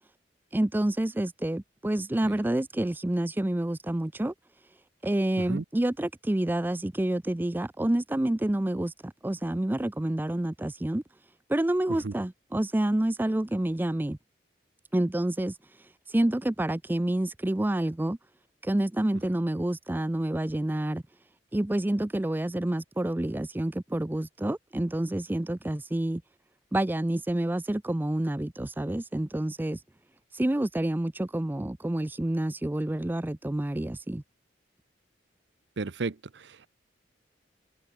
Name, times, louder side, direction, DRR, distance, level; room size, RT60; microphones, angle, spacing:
voice 1, 0.5-4.3 5.0-11.0 11.5-14.2 14.9-15.5 16.1-18.2 18.6-21.0 21.5-26.2 26.7-29.8 30.3-34.2, right 1 dB, 10° right, 0.4 m, -28 dB
voice 2, 35.8-36.7, right 3 dB, 70° right, 0.7 m, -34 dB
head